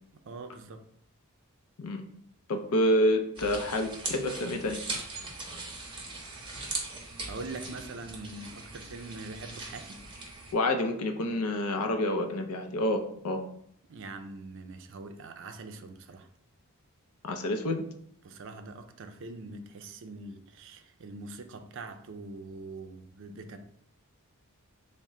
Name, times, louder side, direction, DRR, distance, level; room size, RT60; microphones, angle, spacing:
voice 1, 0.3-0.8 7.3-10.0 13.9-16.3 18.2-23.6, right 3 dB, 55° right, 0.4 m, -43 dB
voice 2, 2.5-4.8 10.5-13.4 17.2-17.8, left 1 dB, 80° left, 0.5 m, -28 dB
sound 1, 3.3-10.5, right 3 dB, 20° right, 0.7 m, -40 dB
3.6 x 2.1 x 4.2 m
head